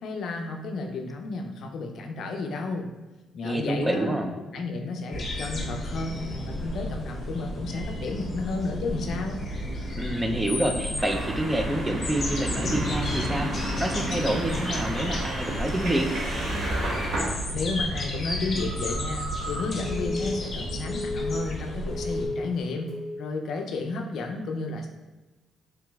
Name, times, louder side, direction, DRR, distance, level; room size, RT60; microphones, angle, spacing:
voice 1, 0.0-2.9 3.3-9.4 17.5-24.9, left 3 dB, 70° left, 3 dB, 0.4 m, -32 dB
voice 2, 3.4-4.3 9.9-16.1, right 1 dB, 15° right, 4 dB, 0.4 m, -28 dB
sound 1, 5.1-22.3, left 1 dB, 40° left, 0.7 m, -32 dB
sound 2, 11.0-17.3, right 1 dB, 60° right, 0.8 m, -33 dB
Telephone, 18.6-21.6 21.9-22.5 22.9-23.2, left 1 dB, 80° right, 1.4 m, -34 dB
3.3 x 2.9 x 2.3 m, 1.1 s
cardioid pair, 90°, 0 cm